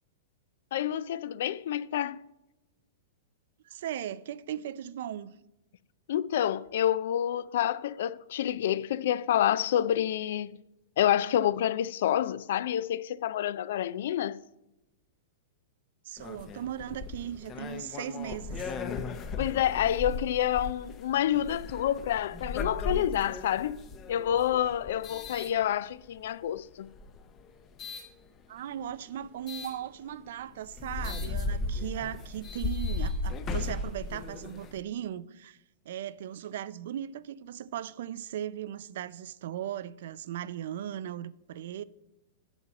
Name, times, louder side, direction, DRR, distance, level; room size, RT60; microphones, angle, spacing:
voice 1, 0.7-2.2 6.1-10.6 11.0-14.4 19.4-23.8 24.1-26.9, left 11 dB, 70° left, 0.3 m, -28 dB
voice 2, 3.6-5.3 16.0-18.7 28.5-35.6 35.9-41.8, right 10 dB, 70° right, 0.4 m, -38 dB
sound 1, 16.2-26.2 26.8-28.1 29.5-29.7 30.3-30.4 30.6-34.8, left 3 dB, 30° left, 0.7 m, -36 dB
9.0 x 4.1 x 7.1 m
hypercardioid pair, 135°, 0 cm